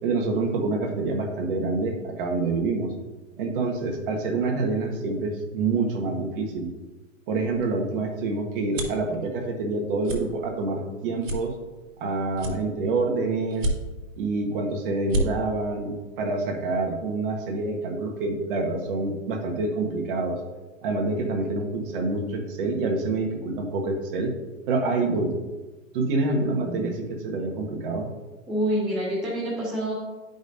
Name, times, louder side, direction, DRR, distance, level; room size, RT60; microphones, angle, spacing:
voice 1, 0.0-2.9 3.4-6.7 7.3-11.5 12.0-13.7 14.2-20.4 20.8-24.3 24.7-25.3 25.9-28.1, right 3 dB, 40° right, 3 dB, 1.4 m, -27 dB
sound 1, 7.5-9.1 9.6-9.8 10.0-10.2 10.7-10.8 11.2-12.0 12.3-13.0 13.5-14.1 14.6-14.7 15.0-15.3, right 1 dB, 70° right, 1.6 m, -29 dB
voice 2, 28.5-29.9, right 1 dB, ahead, -7 dB, 0.4 m, -27 dB
11.0 x 5.2 x 2.7 m, 1.2 s
hypercardioid pair, 140°, 39 cm